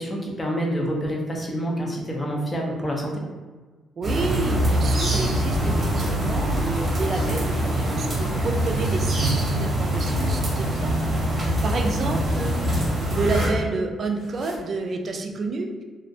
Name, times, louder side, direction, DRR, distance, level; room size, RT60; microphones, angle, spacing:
voice 1, 0.0-3.1, equal, 25° left, -1 dB, 0.6 m, -27 dB
sound 1, 4.0-13.5, right 1 dB, 30° right, 0.8 m, -24 dB
voice 2, 4.0-9.3 9.6-15.8, right 3 dB, 50° right, 3 dB, 0.3 m, -30 dB
Zipper (clothing), 5.7-6.3 6.9-7.5 8.5-9.4 9.8-10.8 11.9-12.5 13.2-13.6 14.1-14.7, left 1 dB, 90° left, 1.0 m, -41 dB
2.4 x 2.0 x 2.6 m, 1.4 s
cardioid pair, 90°, 0 cm